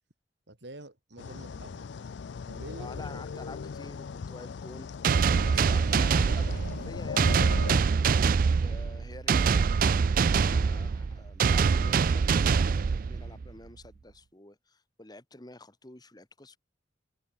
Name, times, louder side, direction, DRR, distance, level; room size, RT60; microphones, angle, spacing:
voice 1, 0.5-1.9 2.5-3.4, right 1 dB, 65° right, 3.0 m, -47 dB
sound 1, 1.2-7.8, left 5 dB, 70° left, 0.4 m, -39 dB
voice 2, 2.8-4.9 5.5-7.4 8.6-16.6, left 2 dB, 20° left, 1.6 m, -48 dB
sound 2, 5.0-13.5, right 5 dB, 50° right, 0.4 m, -24 dB
head